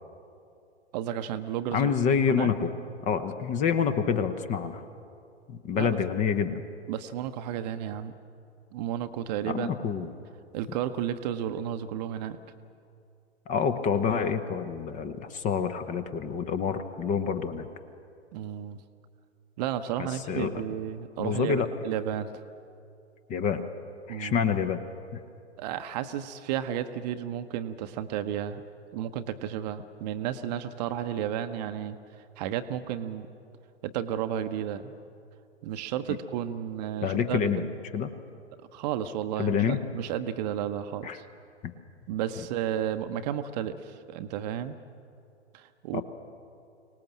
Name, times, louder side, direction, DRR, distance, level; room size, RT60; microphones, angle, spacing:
voice 1, 0.9-1.9 2.3-2.5 5.7-6.0 6.9-8.1 8.7-9.7 10.0-10.1 10.5-12.4 18.3-18.8 19.6-22.3 24.1-24.4 25.6-28.6 28.9-32.0 32.4-33.3 33.8-34.9 35.6-37.6 38.7-41.2 42.1-44.8 45.5-46.0, right 10 dB, 35° right, 9 dB, 0.9 m, -32 dB
voice 2, 1.7-2.7 3.0-4.8 5.5-6.6 9.5-10.1 13.5-17.7 20.0-20.6 21.2-21.7 23.3-23.6 24.1-24.8 37.0-37.7 37.9-38.1 39.4-39.8 41.0-41.2 45.9-46.0, left 6 dB, 20° left, 10 dB, 1.0 m, -27 dB
24.0 x 18.5 x 7.4 m, 2.5 s
figure-of-eight pair, 110°, 35 cm